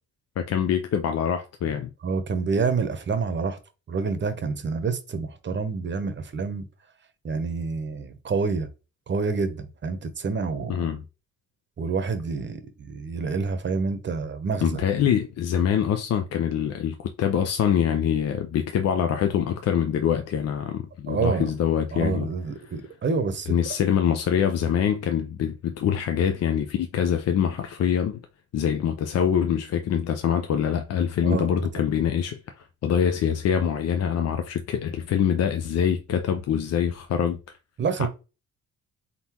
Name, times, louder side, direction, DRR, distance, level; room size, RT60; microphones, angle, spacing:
voice 1, 0.4-1.9 10.7-11.0 14.6-22.3 23.5-28.2 28.5-37.4 38.0-38.1, left 8 dB, 55° left, 0.5 m, -24 dB
voice 2, 2.0-3.6 3.9-6.7 7.2-8.7 9.1-10.9 11.8-15.1 21.1-21.5 21.9-23.5 31.2-31.7 37.8-38.1, right 4 dB, 40° right, 0.8 m, -28 dB
4.0 x 3.8 x 2.9 m
cardioid pair, 90°, 30 cm